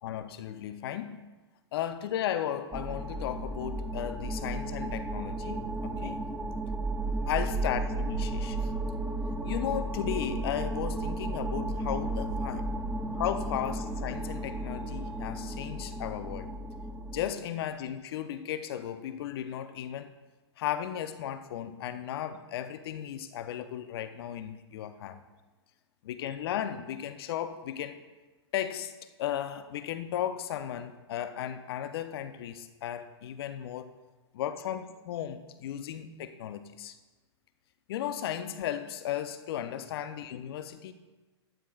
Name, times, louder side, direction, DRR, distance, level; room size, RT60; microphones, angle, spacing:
voice 1, 0.0-1.2 1.7-6.2 7.3-8.7 9.4-12.7 13.1-16.5 17.1-20.1 20.6-25.2 26.0-28.0 28.5-33.9 34.3-37.0 37.9-40.9, left 10 dB, 55° left, 10 dB, 0.7 m, -35 dB
sound 1, 2.7-17.3, right 2 dB, 5° right, 0.4 m, -34 dB
sound 2, 9.1-15.6, right 5 dB, 30° right, 1.1 m, -53 dB
12.5 x 9.3 x 2.4 m, 1.2 s
hypercardioid pair, 120°, 15 cm